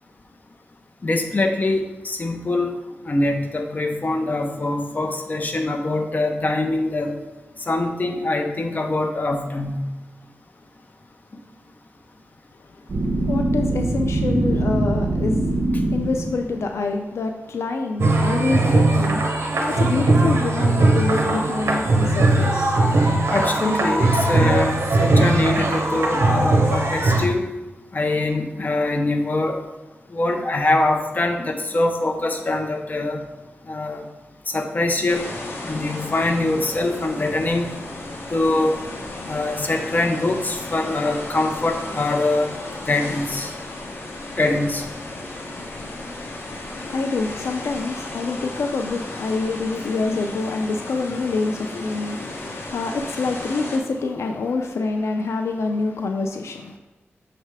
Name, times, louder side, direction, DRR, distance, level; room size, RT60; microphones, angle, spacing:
voice 1, 1.0-2.7 3.1-7.1 7.7-9.8 23.3-27.5 27.9-29.6 30.1-33.2 33.7-34.0 34.5-35.3 35.6-37.7 38.3-38.8 39.3-42.5 42.8-43.5 44.4-44.8, left 2 dB, 40° left, 4 dB, 0.8 m, -23 dB
sound 1, 12.9-16.6, right 2 dB, 50° right, 1.3 m, -22 dB
voice 2, 13.0-22.8 46.5-56.8, left 3 dB, 85° left, 4 dB, 0.5 m, -26 dB
sound 2, 18.0-27.2, right 2 dB, 85° right, 0.8 m, -19 dB
sound 3, 35.1-53.8, left 2 dB, 55° left, 1.1 m, -34 dB
6.5 x 3.4 x 4.8 m, 1.2 s
wide cardioid pair, 90°, 5 cm